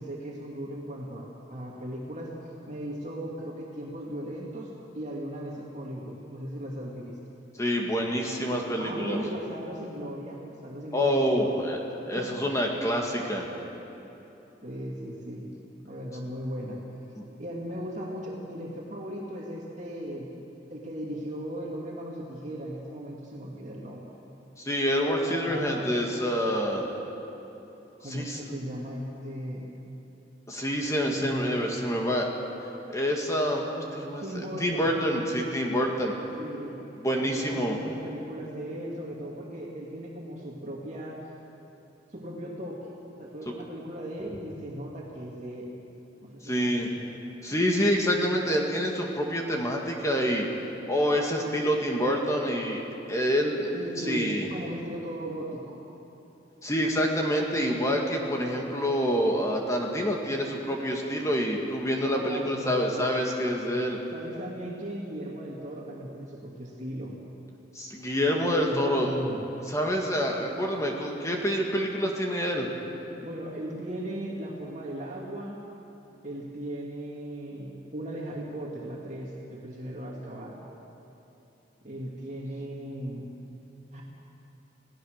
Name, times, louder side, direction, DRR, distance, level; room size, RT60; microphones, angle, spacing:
voice 1, 0.0-2.3 2.7-7.2 8.8-11.7 14.6-15.5 15.8-16.8 17.4-20.3 20.7-24.0 25.2-26.0 28.0-29.6 31.0-31.7 34.2-34.9 36.3-36.8 37.2-41.3 42.1-42.9 43.2-45.7 46.2-47.1 53.7-55.8 62.1-63.1 64.1-67.1 68.6-69.4 73.1-75.6 76.2-80.6 81.8-83.2 83.9-84.0, right 1 dB, 40° right, -3 dB, 2.5 m, -37 dB
voice 2, 7.6-9.2 10.9-11.8 12.1-13.5 17.2-17.3 24.6-26.9 28.0-28.4 30.5-32.3 32.9-36.1 37.0-37.8 46.4-46.9 47.4-50.5 50.9-52.8 53.1-53.7 54.0-54.5 56.6-64.0 67.7-69.1 69.7-72.7, equal, 15° left, 0 dB, 2.0 m, -27 dB
28.5 x 17.0 x 6.6 m, 3.0 s
head